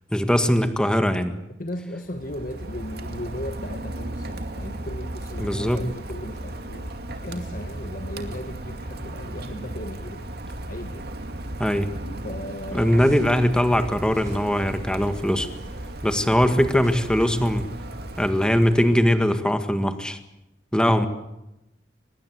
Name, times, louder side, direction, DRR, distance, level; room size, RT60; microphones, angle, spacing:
voice 1, 0.1-1.4 5.4-5.8 11.6-11.9 12.7-15.5 16.0-17.6 18.2-20.2 20.7-21.1, equal, 5° left, 8 dB, 1.8 m, -21 dB
voice 2, 1.6-10.3 10.7-11.2 12.1-13.2 16.2-16.5 21.0-21.1, left 1 dB, 50° left, 6 dB, 1.6 m, -37 dB
Rain, 2.0-19.3, right 1 dB, 60° right, 2.3 m, -35 dB
sound 1, 13.0-13.5 14.1-14.7 15.5-16.0 16.8-17.6, right 1 dB, 20° right, 6.8 m, -49 dB
24.0 x 21.0 x 8.2 m, 0.91 s
head